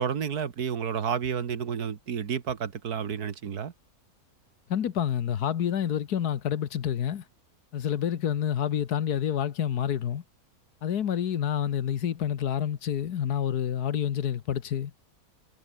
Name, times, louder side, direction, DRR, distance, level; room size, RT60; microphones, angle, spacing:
voice 1, 0.0-3.7, right 7 dB, 70° right, 2.0 m, -30 dB
voice 2, 4.7-7.2 7.7-10.2 10.8-14.9, left 9 dB, 75° left, 1.6 m, -28 dB
omnidirectional pair, 1.7 m